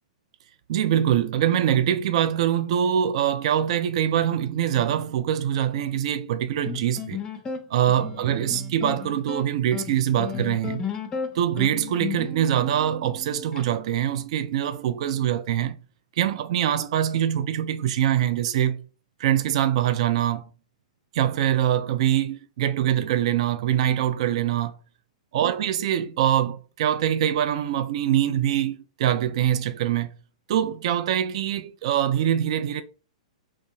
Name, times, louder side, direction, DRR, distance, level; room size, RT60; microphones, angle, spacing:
voice 1, 0.7-7.2 7.7-10.9 11.3-15.8 16.2-18.8 19.2-20.4 21.1-24.7 25.3-30.1 30.5-32.8, right 10 dB, 60° right, 0.3 m, -24 dB
sound 1, 6.7-13.6, left 5 dB, 20° left, 0.5 m, -34 dB
2.8 x 2.1 x 3.1 m
hypercardioid pair, 120°, 4 cm